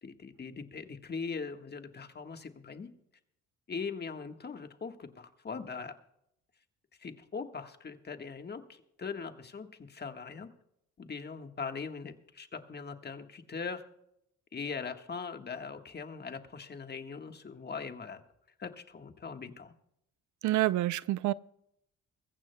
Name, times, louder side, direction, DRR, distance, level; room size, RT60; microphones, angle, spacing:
voice 1, 0.0-2.9 3.7-5.9 7.0-10.5 11.0-13.8 14.5-18.2 18.6-19.7, left 5 dB, 35° left, 1.4 m, -41 dB
voice 2, 20.4-21.3, right 16 dB, 75° right, 0.5 m, -27 dB
23.0 x 15.0 x 2.2 m
cardioid pair, 90°, 30 cm